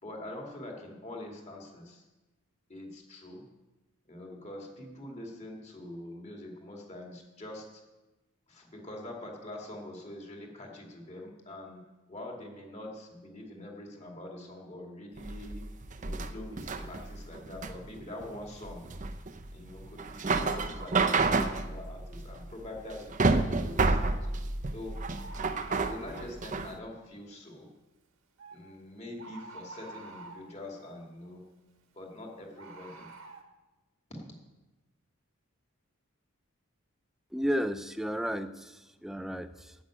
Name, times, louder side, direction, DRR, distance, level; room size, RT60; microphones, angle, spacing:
voice 1, 0.0-2.0 2.7-3.4 4.1-7.8 8.5-15.7 16.0-18.8 19.5-24.4 24.7-25.0 25.8-27.7 28.5-31.5 31.9-33.1 34.2-34.3, left 1 dB, 30° left, 0 dB, 2.4 m, -44 dB
sound 1, 15.2-26.7, right 3 dB, 35° right, 0.7 m, -30 dB
Bird, 23.5-23.6 25.2-26.1 28.4-28.6 29.2-30.5 32.6-33.4, right 3 dB, 75° right, 1.7 m, -47 dB
voice 2, 37.3-39.8, equal, ahead, 10 dB, 0.4 m, -33 dB
10.5 x 7.8 x 8.9 m, 1.1 s
head